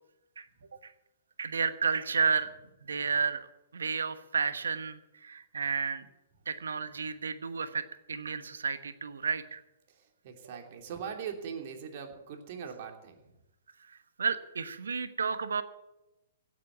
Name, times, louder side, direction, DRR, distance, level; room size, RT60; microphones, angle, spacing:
voice 1, 1.4-2.5 2.8-3.5 3.7-6.0 6.5-9.6 13.9-15.6, right 5 dB, 75° right, 12 dB, 1.2 m, -32 dB
voice 2, 9.9-13.2, right 7 dB, 45° right, 4 dB, 3.0 m, -41 dB
17.0 x 8.4 x 8.1 m, 0.92 s
figure-of-eight pair, 120°, 0 cm